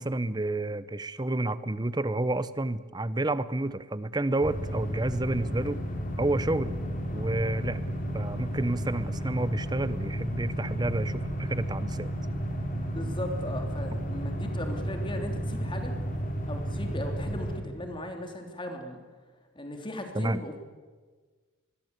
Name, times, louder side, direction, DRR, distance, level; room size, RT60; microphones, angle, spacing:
voice 1, 0.0-5.8 6.2-6.8 7.1-7.8 8.1-12.1 12.7-12.9 20.1-20.4, right 2 dB, 20° right, 15 dB, 0.8 m, -30 dB
sound 1, 4.4-17.6, equal, 40° left, 3.6 m, -32 dB
voice 2, 12.9-15.9 16.5-19.0 19.5-20.6, left 1 dB, 25° left, 4 dB, 3.3 m, -37 dB
26.0 x 21.5 x 8.2 m, 1.4 s
head